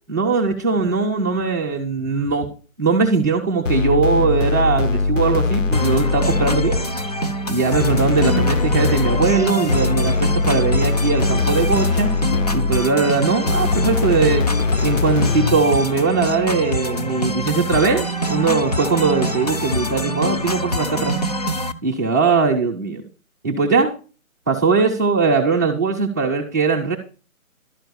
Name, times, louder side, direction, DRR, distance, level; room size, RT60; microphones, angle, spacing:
voice 1, 0.1-2.5 2.8-6.8 7.5-12.1 12.5-14.5 14.8-21.2 21.8-23.0 23.4-23.9 24.5-27.0, right 4 dB, 15° right, -3 dB, 0.6 m, -20 dB
sound 1, 3.7-6.9 7.8-12.9 13.5-15.7, left 3 dB, 60° left, 1.0 m, -21 dB
sound 2, 5.7-21.7, equal, 30° left, 0.5 m, -25 dB
12.0 x 4.6 x 6.7 m, 0.36 s
figure-of-eight pair, 150°, 42 cm